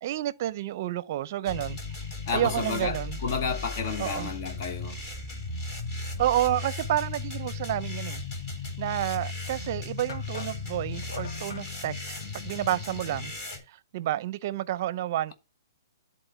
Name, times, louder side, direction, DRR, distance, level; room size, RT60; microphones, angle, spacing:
voice 1, 0.0-1.8 2.3-3.2 4.0-4.3 6.2-8.2 8.8-13.3 13.7-15.3, right 13 dB, 40° right, 0.6 m, -30 dB
sound 1, 1.5-13.6, left 3 dB, 25° left, 3.0 m, -36 dB
voice 2, 2.3-5.0, left 5 dB, 45° left, 1.3 m, -31 dB
sound 2, 9.2-9.3 10.1-11.7, left 5 dB, 85° left, 0.9 m, -43 dB
11.0 x 4.2 x 4.3 m
hypercardioid pair, 155°, 2 cm